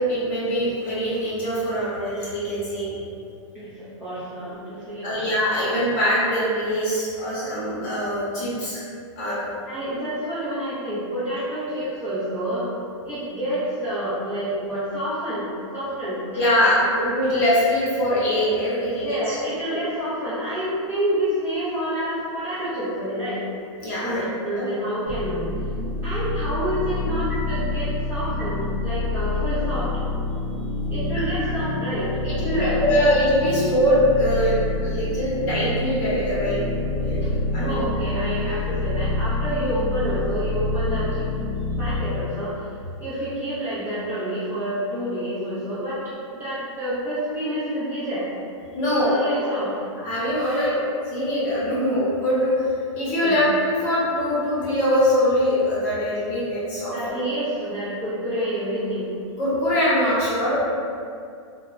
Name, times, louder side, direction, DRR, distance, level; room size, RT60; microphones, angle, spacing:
voice 1, 0.0-2.9 5.0-8.8 9.2-9.4 16.3-19.4 19.7-19.8 23.8-24.2 24.5-24.6 31.1-31.3 32.3-37.8 48.7-49.1 50.0-50.8 51.1-52.6 52.9-57.2 59.4-60.6, equal, 30° left, -9 dB, 0.8 m, -23 dB
voice 2, 3.5-5.2 9.6-12.7 13.0-16.2 16.6-16.9 19.0-23.4 24.0-25.5 26.0-30.0 30.9-33.2 37.6-41.3 41.8-42.7 43.0-48.3 48.8-49.7 50.5-50.8 53.2-53.4 56.9-59.1, equal, 10° right, -14 dB, 0.3 m, -28 dB
sound 1, 25.1-42.0, left 2 dB, 30° right, 0.8 m, -27 dB
3.0 x 2.0 x 2.3 m, 2.4 s
supercardioid pair, 170°, 16 cm